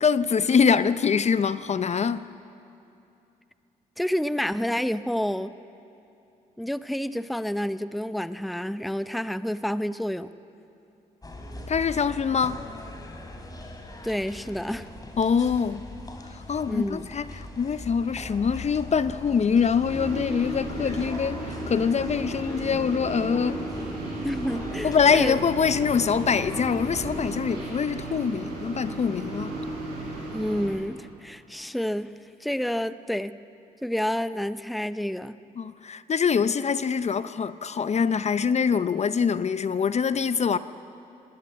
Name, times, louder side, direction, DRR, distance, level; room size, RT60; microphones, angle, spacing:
voice 1, 0.0-2.2 11.7-12.6 15.2-15.8 16.3-23.6 24.8-29.5 35.6-40.6, left 6 dB, 40° left, 0.6 m, -24 dB
voice 2, 4.0-5.5 6.6-10.3 14.0-14.9 16.7-17.1 24.2-25.4 30.3-32.1 32.4-33.4 33.8-35.4, equal, ahead, 0.7 m, -29 dB
sound 1, 11.2-27.4, left 1 dB, 20° left, 3.3 m, -40 dB
sound 2, 19.8-30.7, right 2 dB, 85° right, 7.1 m, -35 dB
19.5 x 18.5 x 8.8 m
supercardioid pair, 55°, 17 cm